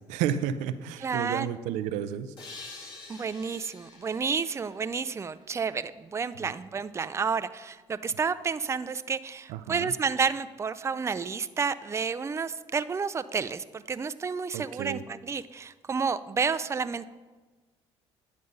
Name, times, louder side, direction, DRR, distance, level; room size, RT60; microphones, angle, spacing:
voice 1, 0.0-2.3 9.5-9.9 14.5-15.0, right 9 dB, 85° right, 12 dB, 0.5 m, -31 dB
voice 2, 1.0-1.5 3.1-17.1, right 5 dB, 25° right, 13 dB, 0.4 m, -30 dB
sound 1, 2.4-5.9, left 3 dB, 40° left, 2.7 m, -48 dB
9.6 x 5.1 x 5.4 m, 1.3 s
supercardioid pair, 70°, 12 cm